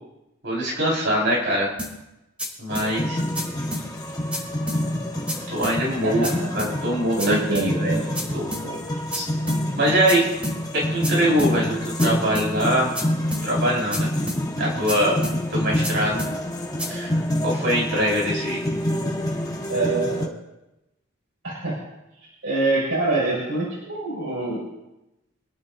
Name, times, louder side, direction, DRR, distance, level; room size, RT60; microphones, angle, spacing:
voice 1, 0.4-1.7 2.6-3.2 5.5-8.0 8.3-8.8 9.1-9.3 9.7-10.3 10.7-12.9 13.4-14.1 14.6-16.3 16.9-18.6, equal, 60° right, -4 dB, 5.2 m, -23 dB
sound 1, 1.8-1.9 2.4-2.5 2.7-2.9 3.3-3.4 3.7-3.8 4.3-4.4 4.7-4.8 5.3-5.4 5.6-5.8 6.2-6.3 6.6-6.7 7.2-7.3 7.5-7.7 8.1-8.2 8.5-8.6 9.1-9.2 9.5-9.6 10.1-10.2 10.4-10.6 11.0-11.1 11.4-11.5 12.0-12.1 12.3-12.5 12.9-13.0 13.3-13.4 13.9-14.0 14.3-14.4 14.9-15.0 15.2-15.4 15.8-15.9 16.2-16.3 16.8-16.9, left 1 dB, 5° right, 3.5 m, -30 dB
sound 2, 2.7-20.3, left 1 dB, 20° left, 1.5 m, -27 dB
voice 2, 7.2-8.1 19.7-20.3 21.4-21.8 22.4-24.6, right 2 dB, 75° right, -8 dB, 6.6 m, -25 dB
27.0 x 11.0 x 2.8 m, 0.94 s
head